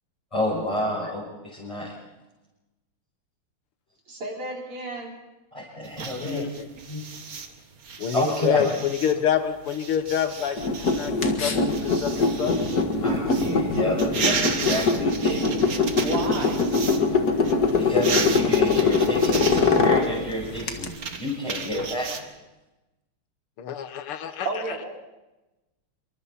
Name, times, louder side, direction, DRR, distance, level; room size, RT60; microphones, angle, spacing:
voice 1, 0.3-1.2 1.5-1.9 5.5-6.5 6.9-7.0 8.1-8.7 13.0-15.4 17.7-22.3, left 1 dB, 15° left, -6 dB, 6.3 m, -29 dB
voice 2, 4.1-5.1 16.0-16.6 24.4-25.0, right 2 dB, 75° right, -1 dB, 5.1 m, -32 dB
sound 1, 5.8-17.0 17.3-22.2, right 5 dB, 45° right, 1.8 m, -34 dB
voice 3, 6.2-6.7 8.0-11.1 11.4-12.6 20.4-20.6 23.6-24.5, left 9 dB, 80° left, 9 dB, 2.2 m, -27 dB
sound 2, 10.6-20.9, left 4 dB, 45° left, 2.2 m, -23 dB
26.5 x 24.5 x 4.3 m, 1.0 s
omnidirectional pair, 2.4 m